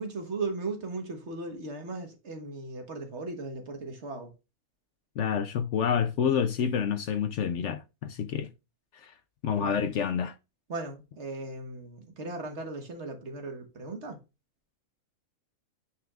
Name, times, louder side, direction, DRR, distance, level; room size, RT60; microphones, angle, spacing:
voice 1, 0.0-4.3 9.6-9.8 10.7-14.2, right 3 dB, 55° right, 1.5 m, -37 dB
voice 2, 5.2-8.5 8.9-9.1 9.4-10.3, left 7 dB, 65° left, 0.8 m, -28 dB
9.2 x 4.7 x 2.4 m
omnidirectional pair, 1.5 m